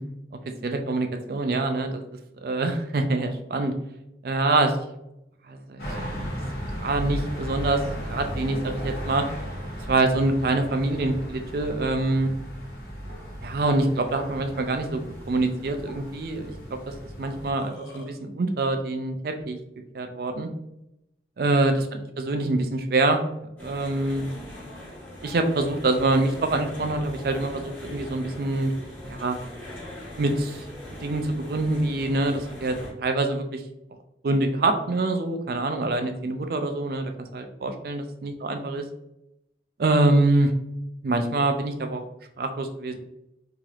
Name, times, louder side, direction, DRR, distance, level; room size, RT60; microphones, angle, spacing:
voice 1, 0.6-2.0 2.4-3.7 4.2-4.7 5.5-5.8 6.7-7.8 8.1-9.2 9.9-12.3 13.4-15.0 15.3-19.6 19.9-20.5 21.4-21.9 22.2-23.2 23.6-24.3 25.2-28.7 29.0-29.4 30.2-33.6 34.2-38.8 39.8-40.5 41.0-42.0 42.4-43.0, right 2 dB, 55° right, 6 dB, 0.4 m, -25 dB
sound 1, 5.8-17.5, equal, 55° left, 0.9 m, -36 dB
Burping eructation, 17.3-18.1, left 1 dB, 75° left, 0.6 m, -44 dB
sound 2, 23.6-32.9, left 1 dB, 10° left, 1.2 m, -41 dB
3.2 x 2.9 x 2.4 m, 0.84 s
head